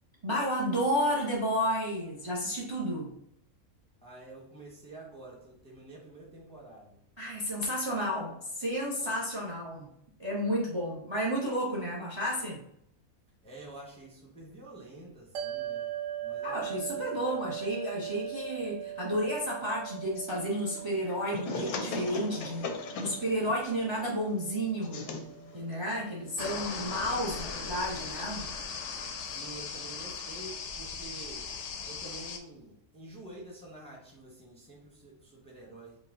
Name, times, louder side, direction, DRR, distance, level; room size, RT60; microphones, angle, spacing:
voice 1, 0.2-3.1 7.2-9.9 10.2-12.6 16.4-25.0 25.5-28.5, equal, 25° right, -3 dB, 0.7 m, -32 dB
voice 2, 4.0-7.0 13.4-17.4 29.2-31.5 31.9-36.0, right 2 dB, 5° left, -3 dB, 0.8 m, -48 dB
sound 1, 15.3-27.8, right 11 dB, 65° right, 0.8 m, -41 dB
sound 2, 20.3-26.9, left 3 dB, 90° left, 1.2 m, -40 dB
sound 3, 26.4-32.4, left 5 dB, 65° left, 0.8 m, -38 dB
5.1 x 2.3 x 3.6 m, 0.71 s
omnidirectional pair, 1.5 m